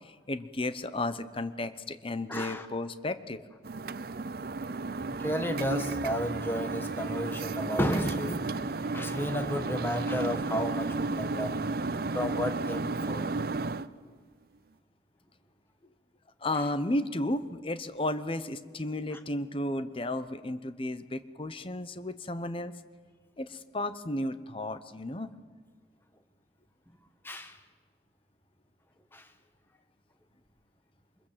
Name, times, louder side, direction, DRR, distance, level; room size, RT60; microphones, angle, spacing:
voice 1, 0.0-3.4 16.4-22.7 23.4-25.3, left 1 dB, 30° left, 12 dB, 0.9 m, -33 dB
voice 2, 2.3-2.7 5.2-11.6 12.1-13.3 19.1-19.2 27.2-27.6 29.1-29.3, equal, 10° left, 7 dB, 1.5 m, -33 dB
sound 1, 3.6-13.9, right 3 dB, 55° right, 0.6 m, -33 dB
23.5 x 21.5 x 7.5 m, 1.5 s
head